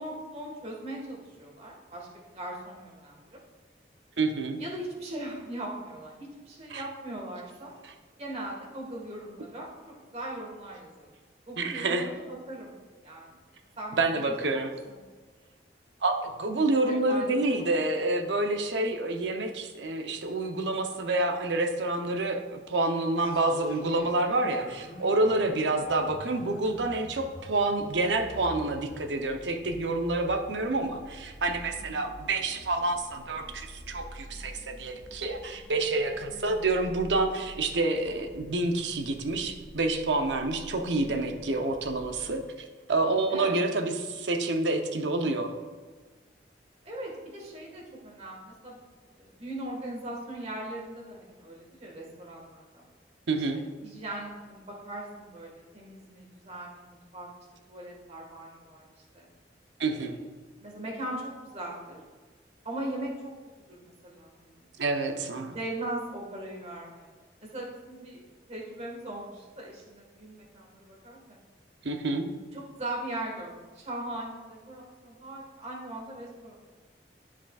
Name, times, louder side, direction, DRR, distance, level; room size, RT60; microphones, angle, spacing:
voice 1, 0.0-2.1 2.3-3.2 4.6-7.7 8.2-9.7 10.1-11.1 11.5-12.7 13.0-13.4 13.8-15.0 16.7-17.8 25.2-25.5 31.7-32.0 36.3-36.6 43.3-43.6 46.8-48.8 49.2-52.8 53.5-57.3 57.7-58.8 59.1-59.3 59.9-60.1 60.6-62.0 62.6-63.3 63.7-64.6 65.1-65.3 65.5-67.1 67.4-68.2 68.5-71.4 72.5-76.5, right 1 dB, 35° right, -2 dB, 1.5 m, -39 dB
voice 2, 4.2-4.6 6.7-6.8 7.8-7.9 11.6-12.1 13.9-14.7 16.0-42.4 42.9-45.6 53.3-53.6 59.8-60.2 64.8-65.6 71.8-72.3, right 2 dB, 90° right, 5 dB, 0.7 m, -28 dB
sound 1, 23.2-42.4, equal, 55° left, 1.2 m, -47 dB
13.5 x 5.1 x 2.3 m, 1.4 s
head